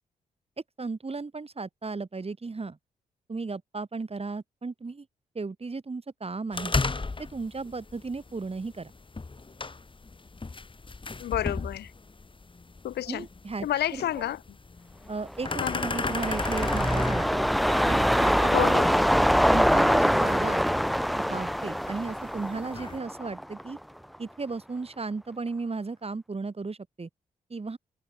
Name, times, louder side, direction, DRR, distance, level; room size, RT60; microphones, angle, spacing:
voice 1, 0.8-2.8 3.3-5.1 5.3-6.7 7.2-8.9 13.1-14.3 15.1-17.4 17.9-18.5 18.8-19.0 19.5-20.6 21.2-23.8 24.2-27.1 27.5-27.8, right 4 dB, 35° right, 6.9 m, -35 dB
sound 1, 6.5-23.0, left 3 dB, 30° left, 2.3 m, -36 dB
voice 2, 11.2-11.9 12.8-13.2 13.6-14.4 15.6-15.9 18.5-18.9, left 12 dB, 85° left, 2.7 m, -29 dB
sound 2, 15.3-23.8 24.1-24.2, equal, ahead, 1.1 m, -24 dB
supercardioid pair, 55°, 17 cm